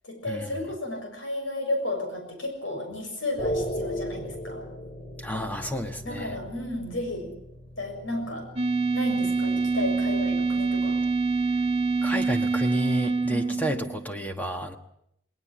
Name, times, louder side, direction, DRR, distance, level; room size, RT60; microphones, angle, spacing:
voice 1, 0.0-4.7 6.0-7.3 7.8-8.5 8.9-11.0 13.3-13.6, left 1 dB, 75° left, 5 dB, 6.8 m, -33 dB
sound 1, 3.4-13.6, equal, 35° left, 2.8 m, -38 dB
voice 2, 5.2-6.4 12.0-14.8, equal, 10° left, 5 dB, 1.3 m, -31 dB
sound 2, 8.6-14.1, right 4 dB, 30° right, 2.0 m, -25 dB
20.0 x 19.5 x 7.6 m, 0.76 s
head